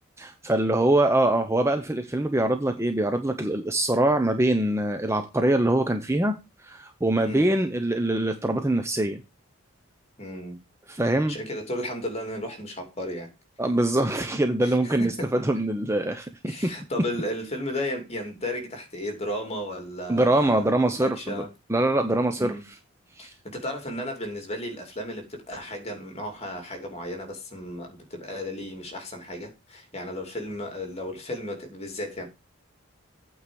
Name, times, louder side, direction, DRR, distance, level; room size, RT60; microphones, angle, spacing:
voice 1, 0.2-9.2 10.9-11.4 13.6-16.7 20.1-22.8 23.2-23.3, right 1 dB, 10° right, 0.7 m, -24 dB
voice 2, 10.2-10.6 11.3-13.3 14.6-15.3 16.4-20.6 21.0-21.5 22.4-22.6 23.2-32.3, left 1 dB, 30° left, 2.8 m, -34 dB
8.7 x 4.8 x 6.9 m
head